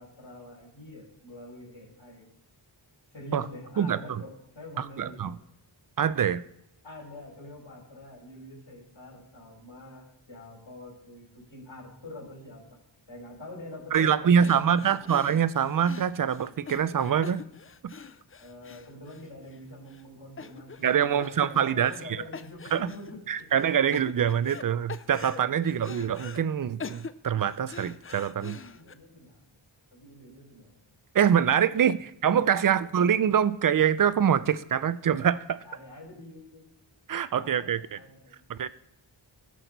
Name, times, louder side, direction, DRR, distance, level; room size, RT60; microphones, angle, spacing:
voice 1, 0.0-2.2 3.1-5.3 6.8-12.8 13.1-15.1 18.4-23.5 25.5-25.7 28.5-29.4 29.9-30.7 31.4-31.9 32.5-32.7 35.6-36.7 37.3-38.4, left 1 dB, 65° left, -3 dB, 5.3 m, -46 dB
voice 2, 3.8-4.2 4.8-5.4 6.0-6.4 13.9-17.4 17.8-17.9 20.8-21.9 22.7-22.9 23.3-28.6 31.1-35.6 37.1-38.0 38.5-38.7, right 8 dB, 45° right, 16 dB, 0.5 m, -25 dB
sound 1, 13.9-14.1 14.4-19.6 19.9-20.0 20.4-20.9 21.2-22.1 22.3-23.1 23.5-24.6 24.9-26.4 26.8-28.9, left 5 dB, 30° left, 0.4 m, -43 dB
18.0 x 6.3 x 4.0 m, 0.80 s
wide cardioid pair, 90°, 49 cm